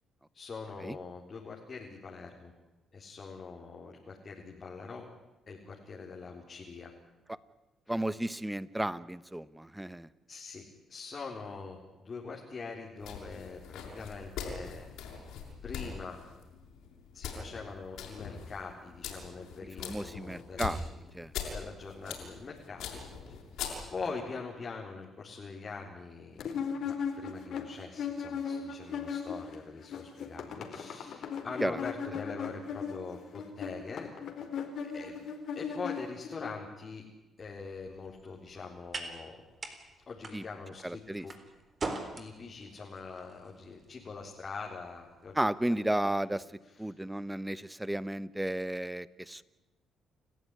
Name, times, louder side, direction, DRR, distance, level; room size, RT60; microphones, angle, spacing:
voice 1, 0.3-2.5 2.9-5.1 5.5-6.9 7.9-8.0 10.3-14.9 15.6-16.2 17.1-20.7 21.5-23.3 23.9-26.4 26.8-34.1 34.9-35.3 35.6-37.1 37.4-39.4 40.1-41.3 42.1-45.4 46.3-46.4 46.6-46.7, left 4 dB, 40° left, -1 dB, 3.9 m, -43 dB
voice 2, 7.9-10.1 19.8-20.8 21.1-21.3 31.6-31.8 40.3-40.4 40.8-41.3 45.3-46.4 46.8-49.4, right 1 dB, 10° right, 17 dB, 1.0 m, -33 dB
sound 1, 13.0-24.2, left 6 dB, 85° left, 6.6 m, -42 dB
sound 2, 26.4-29.6 29.8-36.5, left 6 dB, 70° left, 4.3 m, -37 dB
sound 3, 37.4-45.8, right 3 dB, 35° right, 4.0 m, -45 dB
29.5 x 14.5 x 9.8 m, 1.1 s
cardioid pair, 90°, 0 cm